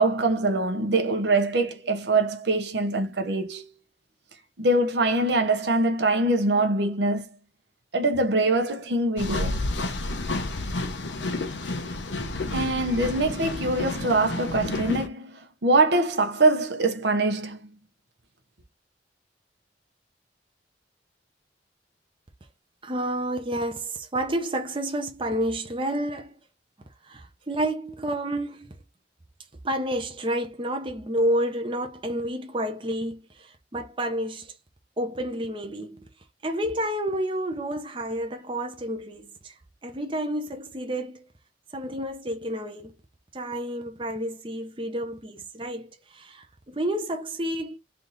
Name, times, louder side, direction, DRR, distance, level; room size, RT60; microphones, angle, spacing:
voice 1, 0.0-3.7 4.6-7.3 7.9-9.6 12.5-17.8, right 2 dB, 65° right, 0.9 m, -23 dB
sound 1, 9.2-15.1, left 2 dB, 85° left, 0.9 m, -30 dB
voice 2, 22.8-26.3 27.0-28.7 29.6-34.5 35.0-36.0 36.4-39.6 39.8-41.3 41.7-42.9 43.3-47.8, right 1 dB, 30° right, 0.7 m, -30 dB
3.5 x 2.9 x 3.9 m
head